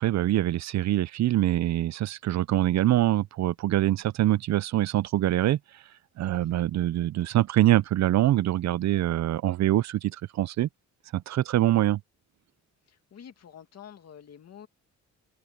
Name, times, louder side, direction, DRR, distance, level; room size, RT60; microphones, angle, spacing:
voice 1, 0.0-5.8 6.2-10.7 11.1-12.0, right 14 dB, 60° right, 0.5 m, -24 dB
voice 2, 12.9-14.7, left 8 dB, 55° left, 2.3 m, -48 dB
cardioid pair, 130°, 30 cm